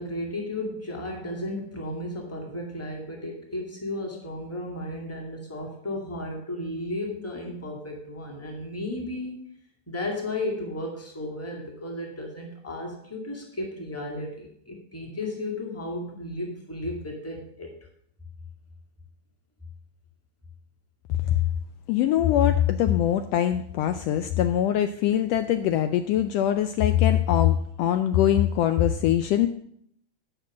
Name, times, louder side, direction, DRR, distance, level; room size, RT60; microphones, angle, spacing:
voice 1, 0.0-9.3 9.9-17.7, left 1 dB, 5° left, 1 dB, 1.3 m, -34 dB
voice 2, 21.9-29.5, left 11 dB, 90° left, 9 dB, 1.4 m, -22 dB
10.0 x 5.3 x 7.2 m, 0.67 s
omnidirectional pair, 3.4 m